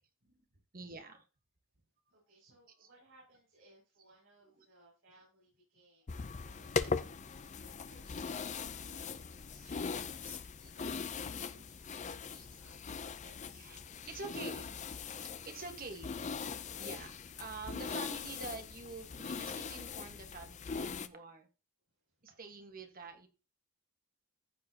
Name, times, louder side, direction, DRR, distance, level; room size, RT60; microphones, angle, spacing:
voice 1, 0.7-1.3 2.7-3.0 3.3-3.4 4.4-4.7 8.0-8.2 10.2-10.7 11.0-11.7 12.3-12.5 13.5-13.8 14.1-14.8 15.2-16.2 16.8-21.5 22.2-23.3, right 3 dB, 40° right, 6 dB, 1.5 m, -48 dB
voice 2, 2.1-12.8 13.2-14.5 15.8-15.9 21.9-22.4, right 2 dB, 60° right, -6 dB, 6.6 m, -65 dB
sound 1, 6.1-21.1, left 5 dB, 35° left, 0.5 m, -40 dB
14.5 x 6.7 x 2.9 m, 0.32 s
head